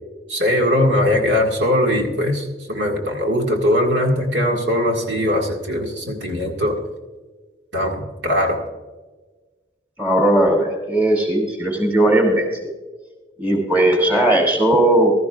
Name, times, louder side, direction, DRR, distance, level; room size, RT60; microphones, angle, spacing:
voice 1, 0.3-6.8 7.7-8.6, left 1 dB, 80° right, 1 dB, 1.9 m, -20 dB
voice 2, 10.0-12.5 13.4-15.1, right 1 dB, 10° right, 0 dB, 2.7 m, -17 dB
16.0 x 13.5 x 2.4 m, 1.2 s
head